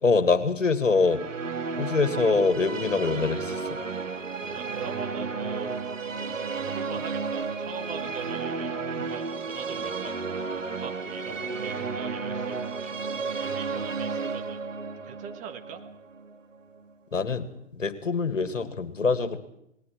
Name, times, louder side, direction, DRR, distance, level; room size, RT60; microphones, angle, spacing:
voice 1, 0.0-1.2 1.8-3.8 9.0-9.1 17.1-17.5 17.7-19.4, left 4 dB, 75° left, 10 dB, 2.1 m, -24 dB
sound 1, 0.8-16.9, right 4 dB, 75° right, 1.9 m, -33 dB
voice 2, 4.5-5.7 6.6-8.7 9.0-10.0 10.5-13.0 13.4-14.6 15.1-15.8, right 7 dB, 20° right, 6 dB, 1.4 m, -42 dB
28.0 x 20.0 x 4.6 m, 0.79 s
figure-of-eight pair, 120°, 38 cm